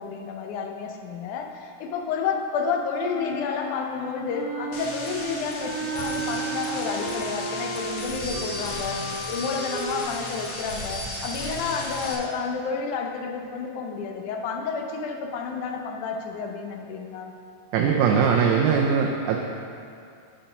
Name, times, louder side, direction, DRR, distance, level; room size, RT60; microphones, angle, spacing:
voice 1, 0.0-9.0 9.3-17.3, left 5 dB, 85° left, 2 dB, 2.2 m, -30 dB
Wind instrument woodwind instrument, 3.0-10.0, right 3 dB, 40° left, 0.7 m, -34 dB
sound 1, 4.7-12.2, left 1 dB, 65° left, 1.6 m, -35 dB
voice 2, 17.7-19.4, right 6 dB, 80° right, 0 dB, 1.8 m, -21 dB
8.8 x 4.3 x 5.5 m, 2.4 s
omnidirectional pair, 3.4 m